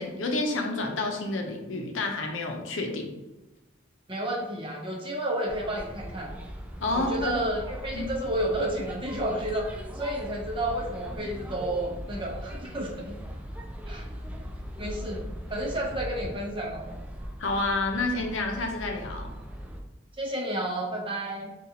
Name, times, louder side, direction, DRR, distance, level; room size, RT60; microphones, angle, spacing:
voice 1, 0.0-3.1 6.8-7.4 7.9-8.1 17.4-19.3, left 2 dB, 80° left, 2 dB, 0.6 m, -29 dB
voice 2, 4.1-6.3 6.9-13.2 13.9-14.0 14.8-16.9 20.2-21.5, right 1 dB, 25° right, -2 dB, 0.7 m, -31 dB
sound 1, 5.5-19.8, equal, 5° right, 0.3 m, -39 dB
3.9 x 2.4 x 2.8 m, 1.0 s
head